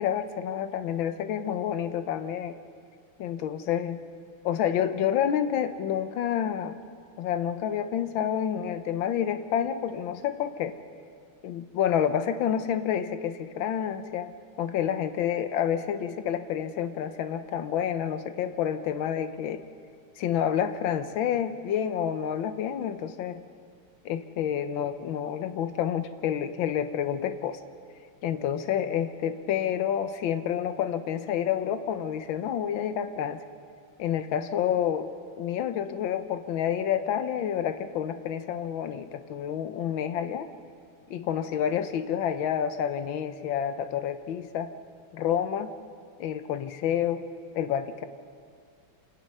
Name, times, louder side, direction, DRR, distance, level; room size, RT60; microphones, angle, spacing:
voice 1, 0.0-2.6 3.2-4.0 4.4-6.8 7.2-10.8 11.4-14.3 14.6-19.6 20.2-23.4 24.1-27.6 28.2-33.4 34.0-40.5 41.1-44.7 45.1-45.7 46.2-47.3 47.6-48.1, left 9 dB, 75° left, 11 dB, 1.6 m, -29 dB
27.5 x 18.0 x 5.5 m, 2.2 s
omnidirectional pair, 2.2 m